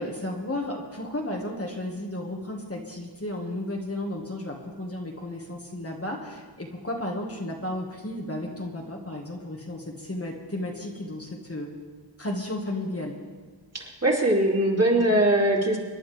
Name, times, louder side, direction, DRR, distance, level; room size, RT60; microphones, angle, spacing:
voice 1, 0.0-11.7 12.2-13.1, left 1 dB, 30° left, 0 dB, 1.7 m, -33 dB
voice 2, 13.7-15.8, right 1 dB, 35° right, -3 dB, 3.1 m, -21 dB
26.0 x 11.0 x 3.4 m, 1.4 s
wide cardioid pair, 95°, 45 cm